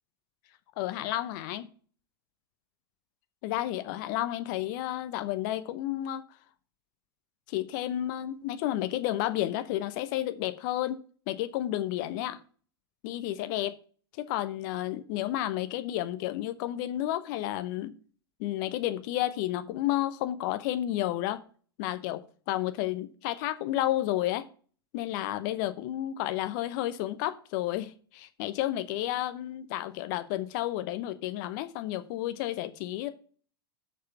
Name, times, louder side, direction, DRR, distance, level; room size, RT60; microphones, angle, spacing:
voice 1, 0.8-1.7 3.4-6.2 7.5-11.0 11.3-12.4 13.0-13.8 14.2-17.9 18.4-21.4 21.8-24.5 24.9-33.1, left 14 dB, 50° left, 0.8 m, -31 dB
6.5 x 5.6 x 7.2 m
figure-of-eight pair, 95°, 13 cm